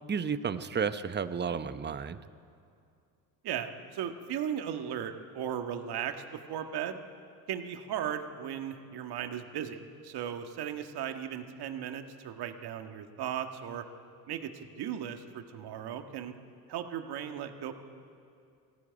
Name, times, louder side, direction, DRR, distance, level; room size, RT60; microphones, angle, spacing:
voice 1, 0.0-2.2, right 6 dB, 25° right, 12 dB, 0.9 m, -32 dB
voice 2, 3.4-7.0 7.5-13.9 14.3-16.3 16.7-17.7, right 9 dB, 55° right, 6 dB, 1.8 m, -37 dB
19.0 x 15.5 x 9.2 m, 2.4 s
hypercardioid pair, 70°, 45 cm